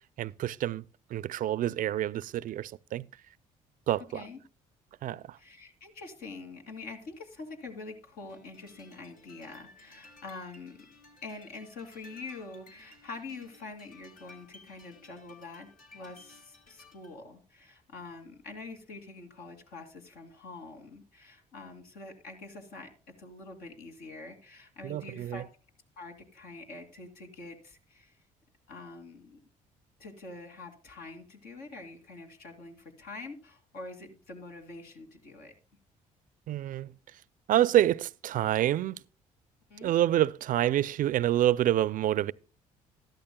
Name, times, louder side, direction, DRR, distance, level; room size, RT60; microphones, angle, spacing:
voice 1, 0.2-0.8 1.1-3.1 3.9-4.2 5.0-5.4 24.8-25.4 36.5-36.9 37.5-39.0 39.8-42.3, right 12 dB, 55° right, 0.4 m, -27 dB
voice 2, 5.4-10.9 11.2-22.9 23.2-25.5 26.0-28.2 28.7-29.4 30.0-35.5 39.7-39.9, left 3 dB, 80° left, 2.5 m, -45 dB
sound 1, 8.3-17.2, left 3 dB, 60° left, 2.7 m, -57 dB
13.0 x 12.0 x 2.2 m
supercardioid pair, 65°, 16 cm